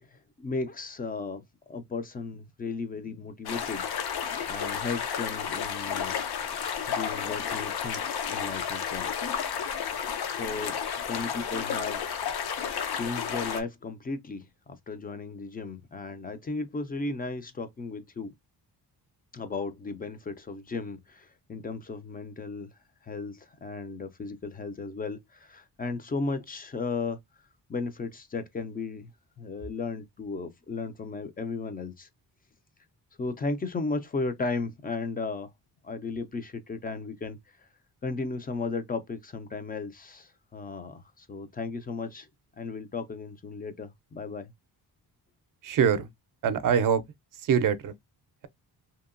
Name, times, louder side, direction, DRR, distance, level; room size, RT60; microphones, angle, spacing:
voice 1, 0.0-1.4 1.7-3.9 4.5-6.2 6.9-9.1 10.3-10.8 11.1-12.0 12.9-14.5 14.9-18.3 19.3-22.7 23.0-27.2 27.7-29.1 29.4-32.1 33.2-35.5 35.8-37.4 38.0-42.3 42.6-44.5, left 3 dB, 25° left, 0.3 m, -35 dB
sound 1, 3.5-13.6, left 7 dB, 65° left, 0.6 m, -32 dB
voice 2, 45.6-46.1 46.4-47.0 47.5-47.9, right 7 dB, 55° right, 0.5 m, -23 dB
2.8 x 2.1 x 2.4 m
wide cardioid pair, 125°, 40 cm